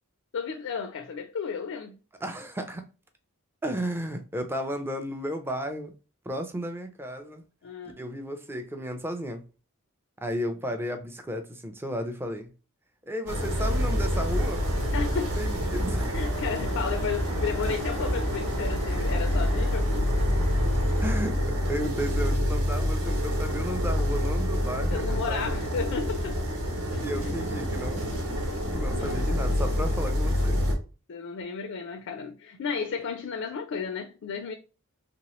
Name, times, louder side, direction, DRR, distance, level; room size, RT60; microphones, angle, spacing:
voice 1, 0.3-2.0 7.6-8.0 14.9-15.4 16.1-20.1 24.8-26.4 26.9-27.3 28.9-29.2 31.1-34.5, left 5 dB, 60° left, 0.4 m, -33 dB
voice 2, 2.2-2.8 3.6-5.9 6.3-7.4 8.0-9.4 10.2-12.5 13.1-14.7 15.4-16.1 21.0-21.4 21.7-25.6 27.0-28.1 28.6-30.6, equal, 10° right, 0.4 m, -33 dB
sound 1, 13.3-30.7, equal, 70° right, 1.0 m, -27 dB
sound 2, 13.5-21.3, equal, 30° right, 0.9 m, -32 dB
3.0 x 2.9 x 2.9 m
head